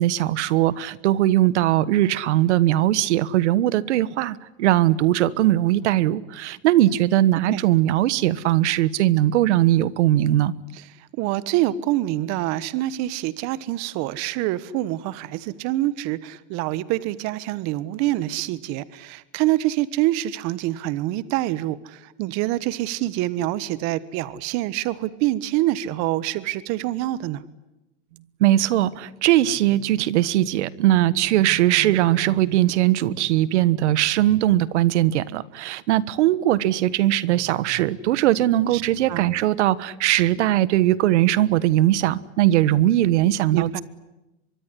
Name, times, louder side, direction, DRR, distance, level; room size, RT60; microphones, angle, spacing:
voice 1, 0.0-10.5 28.4-43.8, right 14 dB, 80° right, 1.4 m, -20 dB
voice 2, 11.2-27.4 38.7-38.8 39.1-39.3 43.5-43.8, right 15 dB, 50° right, 1.4 m, -26 dB
24.5 x 23.5 x 9.9 m
supercardioid pair, 130°, 34 cm